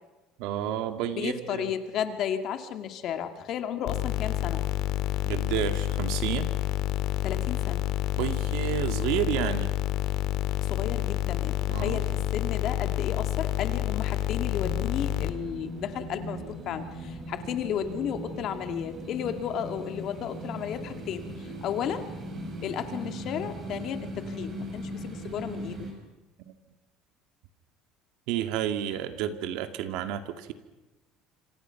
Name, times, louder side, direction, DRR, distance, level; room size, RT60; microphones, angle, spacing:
voice 1, 0.4-1.6 5.2-6.5 8.2-9.7 11.7-12.0 26.4-26.5 28.3-30.5, right 10 dB, 70° right, 8 dB, 2.2 m, -30 dB
voice 2, 1.1-4.6 7.2-7.9 10.6-22.1 22.6-25.9, left 9 dB, 45° left, 7 dB, 2.2 m, -33 dB
sound 1, 3.9-15.3, left 13 dB, 65° left, 1.7 m, -28 dB
sound 2, 14.5-25.9, right 1 dB, 30° right, 5.6 m, -39 dB
27.0 x 26.5 x 5.9 m, 1.1 s
cardioid pair, 160°, 0 cm